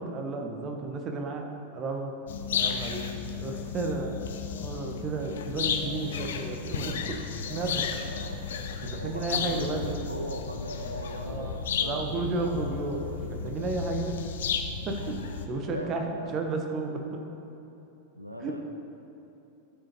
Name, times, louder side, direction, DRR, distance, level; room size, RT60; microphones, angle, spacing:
voice 1, 0.0-2.2 2.6-4.2 4.6-7.2 7.5-8.0 8.6-10.0 11.2-14.2 14.8-17.2 18.4-18.6, right 3 dB, 30° right, 3 dB, 0.8 m, -33 dB
sound 1, 2.3-15.5, left 6 dB, 60° left, 0.5 m, -33 dB
voice 2, 8.0-8.4 9.0-12.4 15.6-16.3 18.2-18.6, equal, 85° right, 4 dB, 0.4 m, -39 dB
13.0 x 5.1 x 2.9 m, 2.9 s
figure-of-eight pair, 90°, 0 cm